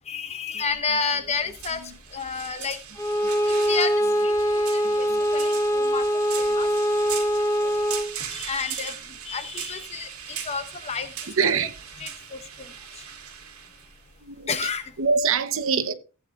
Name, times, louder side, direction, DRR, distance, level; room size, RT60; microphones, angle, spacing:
voice 1, 0.1-1.8 2.1-2.8 3.4-3.9 4.2-5.1 5.3-6.1 6.4-6.7 8.3-9.0 9.2-11.1 11.4-11.5 12.0-12.7 14.5-14.9, left 5 dB, 30° left, 0.8 m, -30 dB
sound 1, 0.7-15.3, right 9 dB, 90° right, 1.8 m, -39 dB
Bowed string instrument, 3.0-8.2, equal, 15° left, 1.1 m, -23 dB
voice 2, 4.8-5.2 7.6-7.8 11.4-11.7 14.2-14.6 15.0-15.9, right 5 dB, 65° right, 0.9 m, -25 dB
14.5 x 8.5 x 2.5 m
head